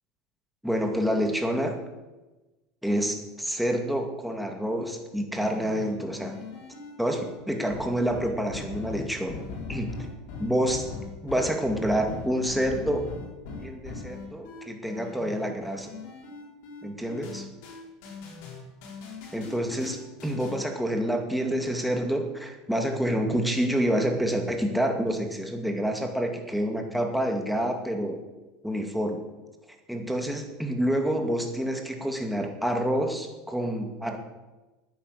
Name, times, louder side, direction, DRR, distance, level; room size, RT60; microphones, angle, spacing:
voice 1, 0.6-1.8 2.8-6.4 7.0-9.4 9.7-9.9 10.4-10.9 11.2-13.0 13.6-15.9 16.8-17.5 19.3-28.2 28.6-29.2 29.9-34.2, equal, ahead, 3 dB, 2.2 m, -28 dB
sound 1, 5.3-20.6, left 4 dB, 65° left, 5.1 m, -40 dB
10.0 x 9.8 x 8.0 m, 1.1 s
supercardioid pair, 115°, 0 cm